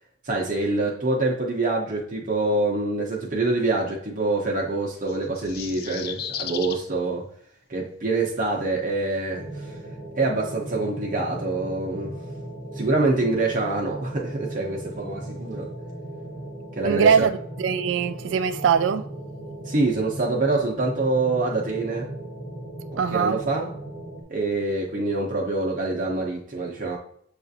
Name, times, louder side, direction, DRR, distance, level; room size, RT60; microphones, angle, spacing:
voice 1, 0.2-7.3 7.7-9.8 10.2-12.2 12.7-15.7 16.8-17.3 19.7-22.1 22.9-23.7 24.3-27.0, right 2 dB, 45° right, 0.7 m, -25 dB
sound 1, 5.1-6.8, left 9 dB, 50° left, 0.3 m, -34 dB
sound 2, 9.3-24.2, right 1 dB, 35° left, 1.1 m, -37 dB
voice 2, 16.8-17.3 17.6-19.1 23.0-23.4, right 7 dB, 65° right, 0.3 m, -21 dB
6.9 x 2.5 x 2.6 m
head